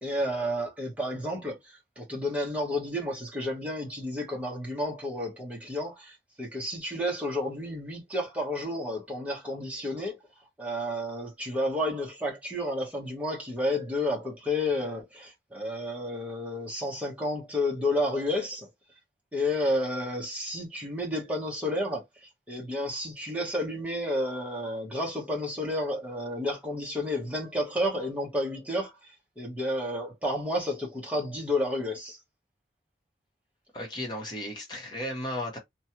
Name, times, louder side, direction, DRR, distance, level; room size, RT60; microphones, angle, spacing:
voice 1, 0.0-10.2 10.6-18.7 19.3-32.2, left 1 dB, 10° right, 1.0 m, -31 dB
voice 2, 33.7-35.6, left 1 dB, 25° left, 1.1 m, -35 dB
3.0 x 2.3 x 2.8 m
head